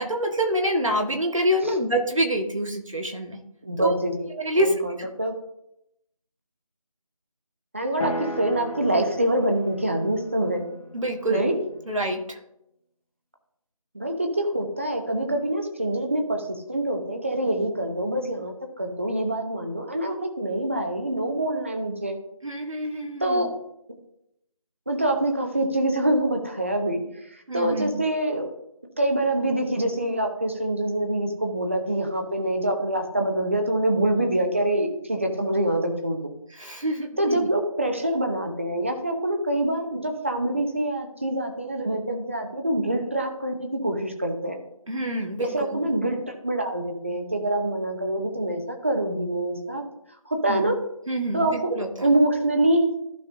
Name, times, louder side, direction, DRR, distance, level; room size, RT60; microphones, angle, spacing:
voice 1, 0.0-3.4 3.8-3.9 4.4-5.1 10.9-11.4 11.9-12.4 22.4-23.5 27.5-27.9 36.6-37.5 44.9-45.8 50.5-50.7 51.1-52.1, right 1 dB, 65° right, 3 dB, 1.5 m, -26 dB
voice 2, 3.6-4.3 4.6-5.3 7.7-10.7 11.3-11.6 13.9-22.2 23.2-23.6 24.9-27.0 27.3-28.5 29.0-36.2 37.2-44.6 45.4-49.8 50.3-50.8 51.3-51.7 52.0-52.9, right 1 dB, 20° right, 4 dB, 0.8 m, -25 dB
sound 1, 8.0-12.1, right 1 dB, 90° left, 1.8 m, -37 dB
14.5 x 5.3 x 2.6 m, 0.82 s
figure-of-eight pair, 165°, 18 cm